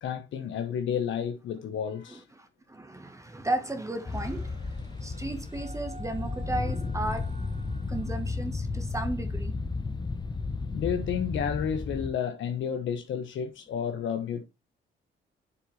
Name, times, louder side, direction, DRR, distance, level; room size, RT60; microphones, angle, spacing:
voice 1, 0.0-2.2 10.7-14.4, left 8 dB, 75° left, 1.2 m, -31 dB
voice 2, 2.1-4.6 5.0-7.3 7.9-9.5, right 2 dB, 15° right, 1.3 m, -34 dB
sound 1, 4.1-12.1, left 3 dB, 20° left, 1.0 m, -33 dB
sound 2, 4.1-9.0, right 2 dB, 35° right, 1.8 m, -52 dB
7.6 x 6.9 x 3.3 m
cardioid pair, 90°, 20 cm